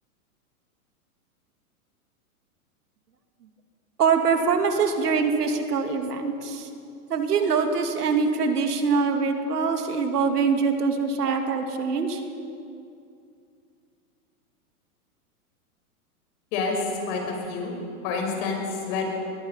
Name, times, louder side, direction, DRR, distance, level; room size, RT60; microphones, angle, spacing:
voice 1, 4.0-6.7 7.1-12.2, right 5 dB, 85° right, 5 dB, 2.5 m, -24 dB
voice 2, 16.5-17.8 18.0-19.0, left 4 dB, 45° left, 1 dB, 5.9 m, -28 dB
23.5 x 21.0 x 5.7 m, 2.5 s
hypercardioid pair, 135°, 45 cm